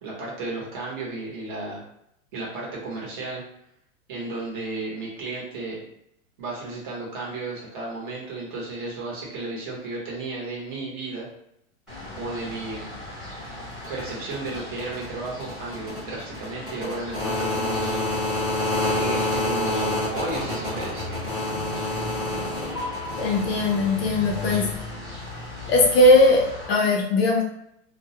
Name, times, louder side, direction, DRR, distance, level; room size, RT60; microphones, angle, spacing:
voice 1, 0.0-1.9 2.3-3.4 4.1-5.8 6.4-11.3 12.2-12.9 13.9-18.6 18.9-21.2, right 3 dB, 40° right, -4 dB, 0.8 m, -33 dB
sound 1, 11.9-26.7, left 1 dB, ahead, 0.6 m, -30 dB
voice 2, 23.2-24.7 25.7-27.4, left 2 dB, 50° left, 0 dB, 0.5 m, -19 dB
2.3 x 2.0 x 2.7 m, 0.75 s
supercardioid pair, 170°, 41 cm